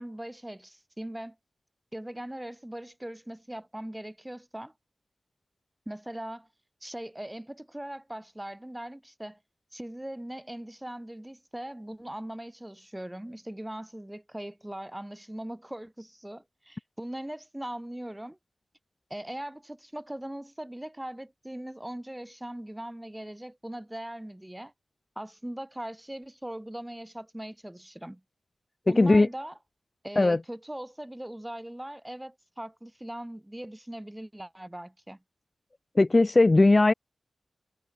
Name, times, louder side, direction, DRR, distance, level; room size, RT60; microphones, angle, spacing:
voice 1, 0.0-1.4 1.9-4.7 5.9-6.5 6.8-9.4 9.7-18.4 19.1-24.7 25.2-28.2 28.9-29.6 30.0-35.2, right 1 dB, 10° right, 5.2 m, -40 dB
voice 2, 28.9-29.3 30.1-30.4 35.9-36.9, left 2 dB, 35° left, 1.6 m, -19 dB
cardioid pair, 55°, 0 cm